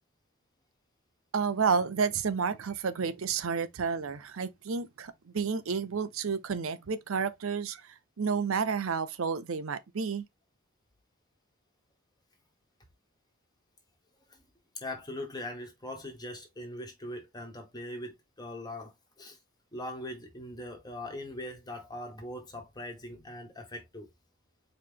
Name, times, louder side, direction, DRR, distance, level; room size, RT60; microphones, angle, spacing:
voice 1, 1.3-10.2, right 5 dB, 80° right, 0.6 m, -31 dB
voice 2, 14.7-19.4 19.7-24.1, left 1 dB, 20° left, 1.4 m, -41 dB
4.7 x 3.1 x 3.6 m
head